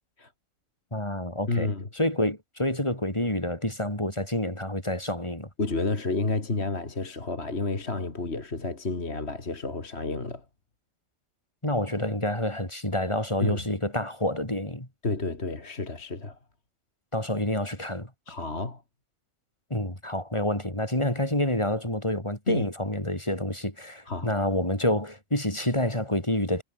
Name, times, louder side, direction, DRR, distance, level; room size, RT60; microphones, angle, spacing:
voice 1, 0.9-5.5 11.6-14.9 17.1-18.1 19.7-26.6, left 1 dB, 20° left, 5.8 m, -28 dB
voice 2, 1.5-1.9 5.6-10.4 13.4-13.6 15.0-16.4 18.3-18.8 22.5-22.6 24.1-24.3, left 3 dB, 50° left, 3.1 m, -30 dB
omnidirectional pair, 1.4 m